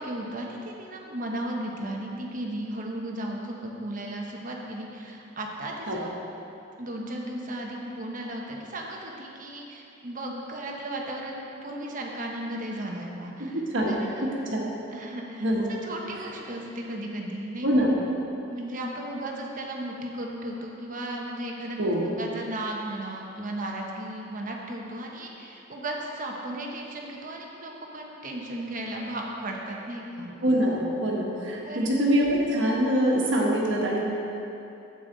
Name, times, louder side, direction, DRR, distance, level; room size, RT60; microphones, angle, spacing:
voice 1, 0.0-6.1 6.8-13.6 13.9-14.3 14.9-15.4 15.8-17.7 18.5-30.3 31.6-31.9, right 1 dB, 45° right, 0 dB, 1.1 m, -35 dB
voice 2, 13.5-14.6 15.4-15.7 17.6-17.9 21.8-22.0 30.4-34.0, equal, 70° right, -2 dB, 1.5 m, -24 dB
9.7 x 8.0 x 4.0 m, 2.8 s
head